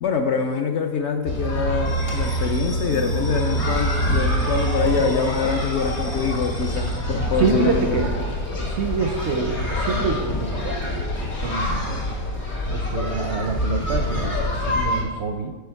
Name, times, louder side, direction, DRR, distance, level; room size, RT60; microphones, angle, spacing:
voice 1, 0.0-8.1 14.7-15.1, left 5 dB, 65° left, 5 dB, 0.7 m, -25 dB
sound 1, 1.3-15.0, equal, 80° left, 2.5 m, -25 dB
voice 2, 6.7-8.1 8.7-11.1 11.4-12.0 12.7-15.6, right 5 dB, 65° right, 6 dB, 0.7 m, -27 dB
6.9 x 6.1 x 4.5 m, 1.4 s
omnidirectional pair, 1.5 m